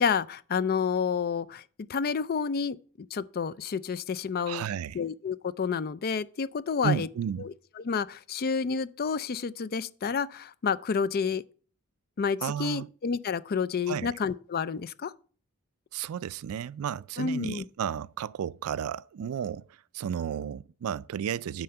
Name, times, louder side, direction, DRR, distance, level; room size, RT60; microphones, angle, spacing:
voice 1, 0.0-1.6 1.9-2.8 3.1-4.6 4.9-7.1 7.4-7.5 7.8-11.4 12.2-15.1 17.2-17.6, left 6 dB, 45° left, 0.4 m, -29 dB
voice 2, 4.5-5.0 6.8-7.5 12.4-12.9 13.9-14.1 15.9-19.7 19.9-21.6, right 8 dB, 75° right, 0.3 m, -33 dB
9.3 x 4.3 x 6.8 m
head